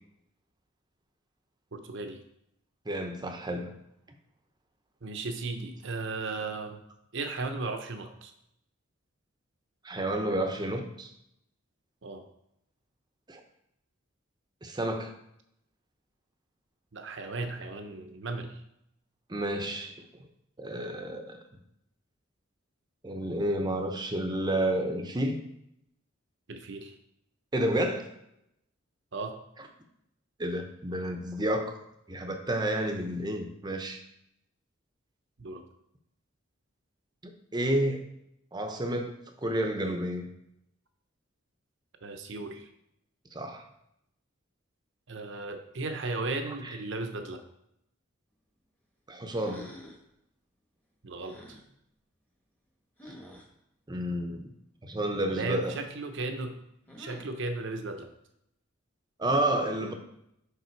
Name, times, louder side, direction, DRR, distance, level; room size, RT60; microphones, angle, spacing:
voice 1, 1.7-2.2 5.0-6.8 7.1-8.3 12.0-12.2 16.9-18.6 26.5-27.0 29.1-29.4 35.4-35.6 42.0-42.7 45.1-47.4 51.0-51.4 55.3-56.6 57.0-58.1, right 3 dB, 65° right, 6 dB, 0.9 m, -35 dB
voice 2, 2.9-3.7 9.8-11.1 13.3-13.4 14.6-15.1 19.3-19.9 20.6-21.4 23.0-25.4 27.5-28.0 30.4-31.7 32.1-34.0 37.2-38.0 38.5-39.1 39.4-40.3 43.3-43.6 46.5-46.8 49.1-49.7 53.9-54.4 54.8-55.7 59.2-59.9, right 1 dB, 20° right, 5 dB, 0.8 m, -30 dB
sound 1, 49.3-50.1 51.2-51.6 53.0-53.5 55.6-56.0 56.9-57.4, left 1 dB, 10° left, 1.2 m, -48 dB
6.7 x 5.4 x 4.6 m, 0.79 s
head